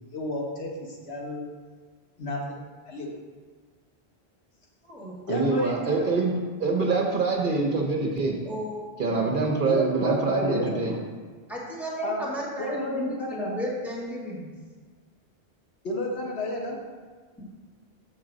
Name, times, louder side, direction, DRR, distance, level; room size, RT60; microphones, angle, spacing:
voice 1, 0.0-1.4 2.2-2.6 2.9-3.1 5.3-6.0 9.7-10.8 12.0-12.2 12.6-13.5 15.8-16.8, left 1 dB, 80° left, -1 dB, 1.4 m, -31 dB
voice 2, 5.3-8.4 9.0-11.0, right 3 dB, 55° right, 1 dB, 0.9 m, -25 dB
voice 3, 8.4-9.2 11.5-14.5, equal, ahead, -5 dB, 1.9 m, -34 dB
6.2 x 3.8 x 6.0 m, 1.5 s
omnidirectional pair, 1.1 m